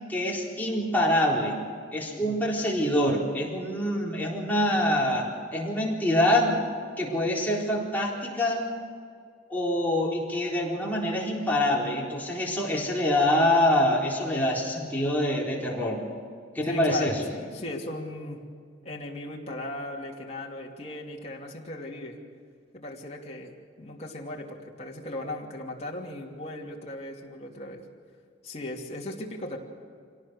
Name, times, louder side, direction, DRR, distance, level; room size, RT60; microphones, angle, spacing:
voice 1, 0.1-1.6 1.9-6.6 7.0-8.7 9.5-16.0 16.5-17.2, left 1 dB, 10° left, -4 dB, 4.2 m, -25 dB
voice 2, 2.1-2.5 16.7-18.4 18.8-22.2 22.7-27.8 28.4-29.6, left 1 dB, 35° left, -2 dB, 2.7 m, -37 dB
26.0 x 18.0 x 6.5 m, 2.2 s
head